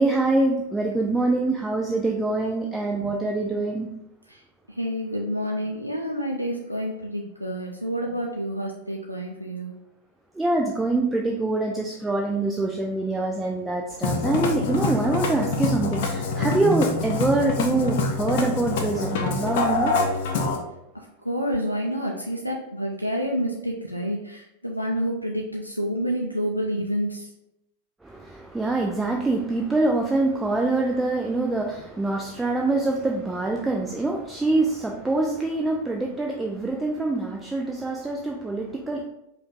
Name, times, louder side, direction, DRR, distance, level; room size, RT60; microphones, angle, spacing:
voice 1, 0.0-3.9 10.3-20.0 28.0-39.1, right 2 dB, 10° right, 0 dB, 0.4 m, -25 dB
voice 2, 4.8-9.7 20.9-27.3, equal, 90° right, -1 dB, 0.4 m, -28 dB
Musical instrument, 13.9-20.6, left 3 dB, 50° left, 0.6 m, -25 dB
5.0 x 2.5 x 3.6 m, 0.85 s
figure-of-eight pair, 90°, 0 cm